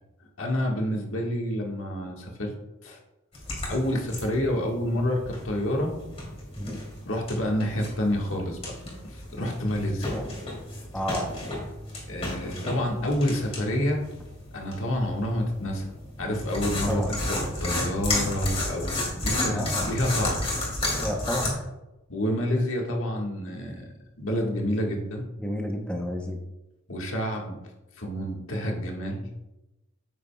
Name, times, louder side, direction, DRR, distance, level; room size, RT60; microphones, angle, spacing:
voice 1, 0.4-2.5 2.8-3.0 3.7-5.9 7.1-8.6 9.0-10.1 12.1-14.0 14.5-15.9 16.2-20.4 22.1-25.2 26.9-27.6 28.0-29.3, left 1 dB, 65° left, 0 dB, 1.6 m, -28 dB
sound 1, 3.3-21.5, left 1 dB, 30° left, 2.8 m, -33 dB
voice 2, 10.9-11.3 16.9-17.1 19.5-19.9 21.0-21.5 25.4-26.4, equal, 5° left, 1 dB, 0.7 m, -31 dB
9.3 x 8.6 x 2.3 m, 0.98 s
head